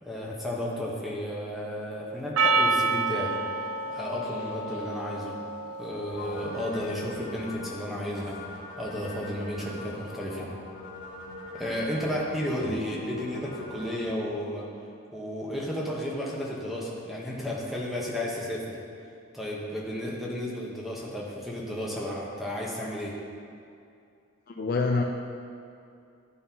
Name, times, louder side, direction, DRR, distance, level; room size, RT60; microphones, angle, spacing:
voice 1, 0.0-5.3 5.8-8.4 8.8-10.5 11.5-14.7 15.1-18.8 19.3-23.2, left 1 dB, ahead, -4 dB, 0.9 m, -33 dB
Percussion, 2.4-6.9, right 3 dB, 85° right, 0.4 m, -29 dB
sound 1, 6.1-14.0, left 1 dB, 60° left, 1.6 m, -42 dB
voice 2, 24.5-25.0, left 3 dB, 45° left, 1 dB, 0.4 m, -26 dB
11.0 x 5.5 x 2.8 m, 2.5 s
head